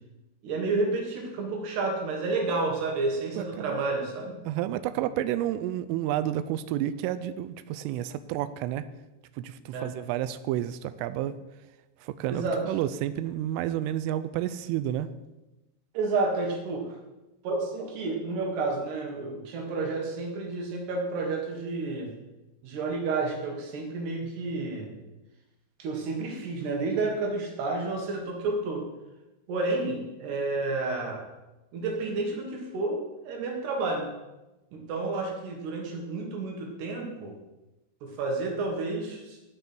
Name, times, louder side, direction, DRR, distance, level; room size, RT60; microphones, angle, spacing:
voice 1, 0.4-4.4 4.9-5.1 9.7-9.9 12.3-12.6 15.9-16.9 17.4-22.1 22.6-24.9 25.8-28.9 29.5-31.3 31.7-34.1 34.7-37.4 38.0-39.4, right 3 dB, 60° right, 1 dB, 3.5 m, -30 dB
voice 2, 3.4-3.8 4.5-8.9 9.4-11.4 12.0-15.1, right 12 dB, 85° right, 13 dB, 3.1 m, -30 dB
17.0 x 5.8 x 6.1 m, 1.0 s
omnidirectional pair, 6.0 m